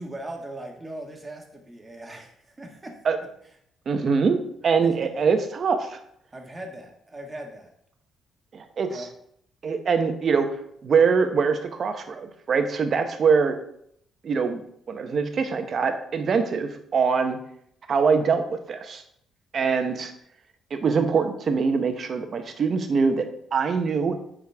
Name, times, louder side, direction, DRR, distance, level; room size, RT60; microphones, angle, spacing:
voice 1, 0.0-2.9 4.8-5.1 6.3-7.7 8.9-9.1, right 1 dB, 20° right, 1 dB, 1.8 m, -39 dB
voice 2, 3.9-6.0 8.5-9.1 9.6-10.5 10.8-13.5 14.2-14.6 14.9-17.4 17.9-19.0 19.5-20.1 20.7-23.2 23.5-24.2, right 5 dB, 50° right, 7 dB, 1.0 m, -23 dB
9.3 x 5.1 x 3.6 m, 0.71 s
cardioid pair, 90°, 0 cm